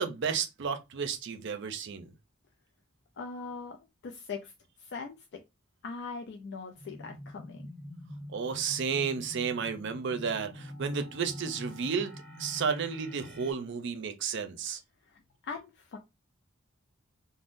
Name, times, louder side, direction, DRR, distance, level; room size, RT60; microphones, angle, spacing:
voice 1, 0.0-2.1 8.3-14.8, right 6 dB, 60° right, 0.5 m, -32 dB
voice 2, 3.2-3.8 4.0-4.5 4.8-5.4 5.8-7.7 15.0-16.0, left 4 dB, 60° left, 0.4 m, -41 dB
sound 1, 6.7-13.5, left 1 dB, 5° left, 0.9 m, -45 dB
3.5 x 2.1 x 2.5 m
head